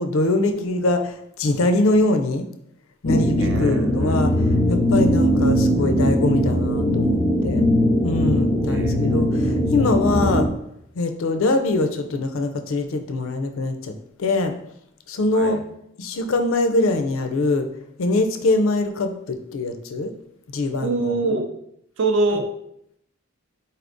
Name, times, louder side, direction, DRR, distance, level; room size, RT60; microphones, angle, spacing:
voice 1, 0.0-2.5 3.0-4.3 4.7-7.6 8.0-10.5 11.0-14.6 15.1-15.6 16.0-17.7 18.0-20.1 20.5-21.1, left 2 dB, 65° left, 6 dB, 0.4 m, -23 dB
sound 1, 3.0-10.5, equal, 15° left, 0.5 m, -20 dB
voice 2, 3.4-4.3 8.7-9.3 15.3-15.6 20.8-21.6 22.0-22.5, right 3 dB, 55° right, 4 dB, 0.5 m, -25 dB
4.2 x 3.4 x 2.5 m, 0.76 s
head